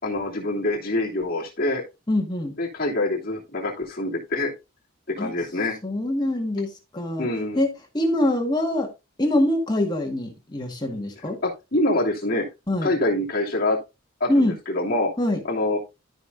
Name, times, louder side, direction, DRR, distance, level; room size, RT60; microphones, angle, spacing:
voice 1, 0.0-1.8 2.6-4.5 5.2-5.8 7.2-7.6 11.4-12.5 12.8-13.8 14.2-15.1 15.5-15.8, left 2 dB, 45° left, 2.8 m, -25 dB
voice 2, 2.1-2.5 5.2-5.3 5.8-7.3 7.5-7.7 7.9-8.9 9.2-11.4 12.7-12.9 14.3-14.6 15.2-15.4, left 1 dB, 20° left, 1.7 m, -24 dB
13.5 x 5.5 x 2.6 m
head